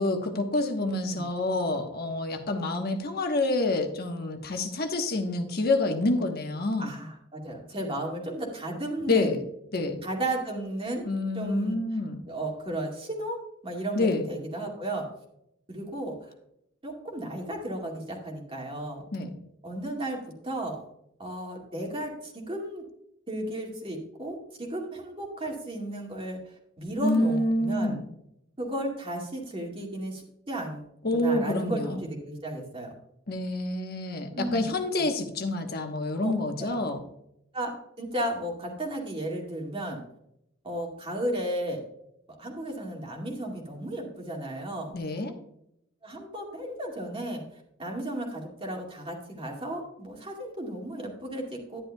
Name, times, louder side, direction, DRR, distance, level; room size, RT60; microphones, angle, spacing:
voice 1, 0.0-6.9 9.1-9.4 9.7-10.0 11.0-12.2 13.9-14.2 19.1-19.3 27.0-28.0 31.0-32.0 33.3-37.0 44.9-45.3, left 2 dB, 50° left, 4 dB, 1.1 m, -27 dB
voice 2, 0.9-1.3 6.8-9.4 10.0-11.8 12.3-15.0 15.7-16.1 16.8-19.0 19.6-20.8 21.2-22.8 23.3-26.4 26.8-28.0 28.6-30.8 31.1-32.9 34.3-34.7 35.0-35.1 36.2-36.3 36.6-36.8 37.5-40.0 40.6-41.8 42.4-44.9 46.0-47.4 47.8-51.8, right 1 dB, 30° right, 0 dB, 2.1 m, -34 dB
11.5 x 10.5 x 2.3 m, 0.78 s
head